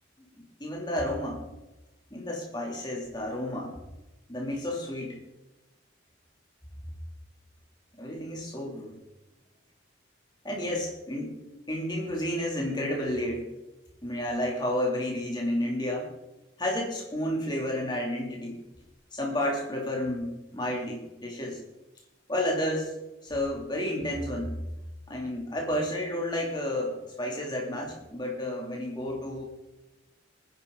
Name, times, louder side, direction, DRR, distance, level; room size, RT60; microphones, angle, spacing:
voice 1, 0.4-1.5 2.1-3.8 4.3-5.2 8.0-9.0 10.4-11.4 11.7-13.4 14.0-16.1 16.6-18.6 19.1-21.6 22.3-22.9 23.2-24.6 25.1-29.4, left 1 dB, 20° left, -1 dB, 2.7 m, -31 dB
20.0 x 10.0 x 3.8 m, 1.1 s
head